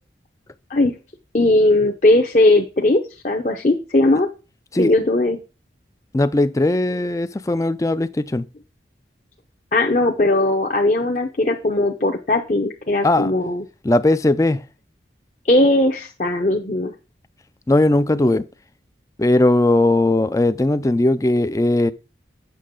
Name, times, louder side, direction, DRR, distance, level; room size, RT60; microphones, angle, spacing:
voice 1, 1.3-4.3 4.8-5.4 9.7-13.6 15.5-16.9, left 2 dB, 40° left, 0.9 m, -18 dB
voice 2, 6.1-8.5 13.0-13.3 13.8-14.7 17.7-18.5 19.2-21.9, left 2 dB, 20° left, 0.4 m, -18 dB
8.4 x 6.5 x 3.7 m
head